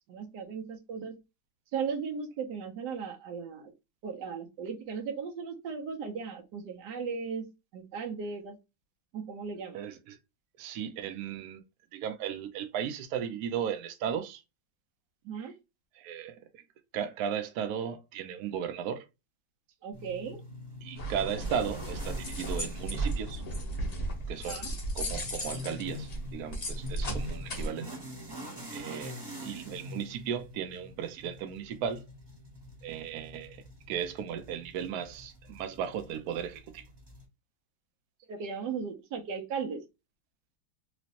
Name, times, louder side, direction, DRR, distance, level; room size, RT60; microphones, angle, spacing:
voice 1, 0.1-1.2 1.7-3.7 4.0-7.5 7.7-8.6 9.1-9.8 15.2-15.5 19.8-20.4 24.5-24.7 38.3-39.8, right 6 dB, 65° right, 1.2 m, -36 dB
voice 2, 9.7-10.2 10.6-11.6 11.9-14.4 15.9-16.6 16.9-19.0 20.8-23.4 24.3-24.7 24.9-27.9 28.7-32.1 32.8-36.9, right 8 dB, 85° right, 0.8 m, -36 dB
sound 1, 19.9-37.2, left 1 dB, 25° right, 0.6 m, -46 dB
sound 2, 21.0-27.7, right 1 dB, 45° left, 0.5 m, -35 dB
3.1 x 3.0 x 2.8 m
omnidirectional pair, 2.2 m